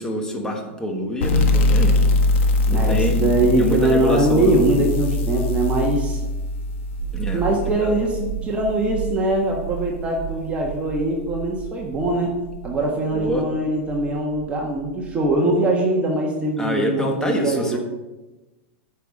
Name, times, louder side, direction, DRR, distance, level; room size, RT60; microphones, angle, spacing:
voice 1, 0.0-2.0 2.7-4.6 7.1-8.0 13.1-13.4 16.6-17.8, equal, 10° left, 2 dB, 1.4 m, -26 dB
sound 1, 1.2-8.5, left 2 dB, 65° left, 1.5 m, -22 dB
voice 2, 2.6-6.2 7.3-12.4 12.6-17.8, right 1 dB, 20° right, -2 dB, 1.4 m, -22 dB
sound 2, 7.0-15.4, right 15 dB, 85° right, 1.0 m, -34 dB
9.2 x 5.6 x 6.5 m, 1.1 s
supercardioid pair, 145°, 7 cm